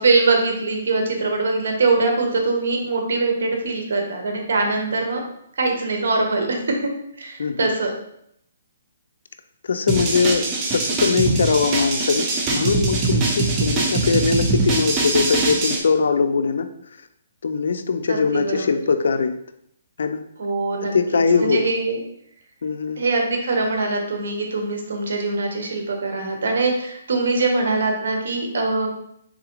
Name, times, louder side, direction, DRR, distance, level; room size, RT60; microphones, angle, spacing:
voice 1, 0.0-5.2 5.6-6.9 7.2-7.9 18.1-18.6 20.4-22.0 23.0-28.9, right 3 dB, 70° right, 2 dB, 1.0 m, -22 dB
voice 2, 9.6-16.7 17.4-19.4 20.0-20.2 20.8-21.7 22.6-23.0, left 5 dB, 75° left, 9 dB, 0.4 m, -21 dB
sound 1, 9.9-15.8, right 3 dB, 20° right, 0.7 m, -22 dB
3.8 x 3.6 x 3.0 m, 0.73 s
hypercardioid pair, 150°, 0 cm